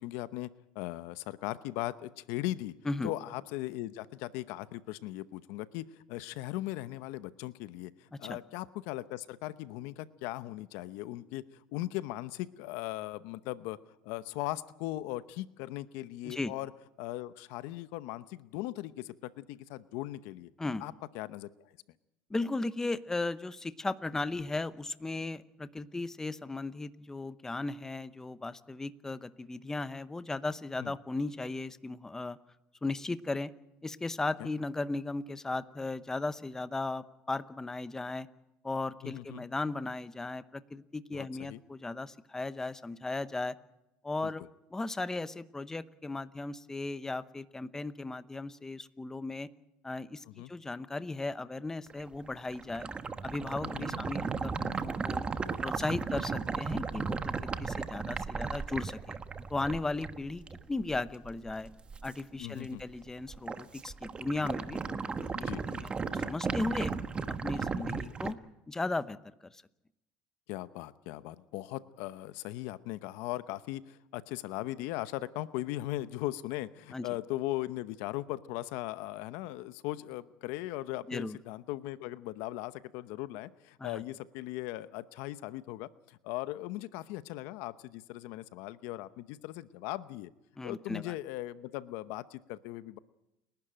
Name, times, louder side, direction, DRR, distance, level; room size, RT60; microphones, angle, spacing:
voice 1, 0.0-2.7 3.0-13.8 14.0-16.7 17.0-20.5 20.8-21.8 30.8-30.9 34.4-34.5 39.0-39.4 41.1-41.6 44.2-44.3 50.3-50.5 53.6-54.0 62.4-62.8 65.3-65.6 67.6-68.0 70.5-90.3 90.6-93.0, left 16 dB, 75° left, 15 dB, 0.8 m, -39 dB
voice 2, 22.3-32.4 32.8-33.5 33.8-38.3 38.6-43.6 44.0-44.4 44.7-49.5 49.8-52.9 53.2-55.2 55.6-59.2 59.5-61.7 62.0-65.0 65.2-66.9 67.4-68.4 68.7-69.2 69.5-69.6 76.9-77.1 81.1-81.4 83.8-84.0 90.6-91.1, left 2 dB, 10° left, 14 dB, 0.8 m, -36 dB
sound 1, 51.9-62.2 62.6-63.0 63.3-68.3, right 5 dB, 25° right, 1.2 m, -35 dB
29.5 x 12.0 x 8.9 m, 0.89 s
supercardioid pair, 110°, 4 cm